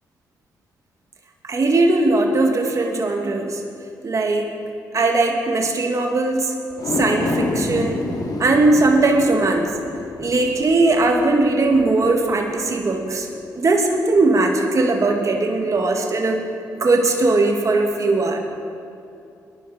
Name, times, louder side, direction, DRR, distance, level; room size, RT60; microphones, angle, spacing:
voice 1, 1.4-3.6 4.0-4.5 4.9-6.5 7.0-8.0 8.4-9.7 10.2-13.3 13.5-16.5 16.7-18.4, right 2 dB, 45° right, 3 dB, 1.7 m, -19 dB
sound 1, 6.7-13.2 13.6-13.7, left 2 dB, 60° left, 1.9 m, -29 dB
19.5 x 11.0 x 4.2 m, 2.6 s
supercardioid pair, 55°, 7 cm